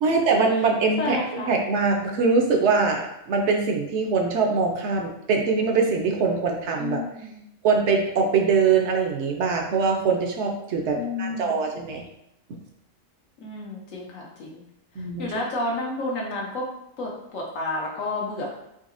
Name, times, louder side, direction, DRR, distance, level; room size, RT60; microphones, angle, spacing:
voice 1, 0.0-7.0 7.6-12.0 15.0-15.3, right 4 dB, 70° right, 2 dB, 0.8 m, -23 dB
voice 2, 1.0-1.5 6.8-7.4 10.9-11.5 13.4-14.6 15.2-16.7 17.0-18.5, left 2 dB, 80° left, -2 dB, 1.2 m, -30 dB
4.0 x 2.7 x 2.5 m, 0.79 s
omnidirectional pair, 1.3 m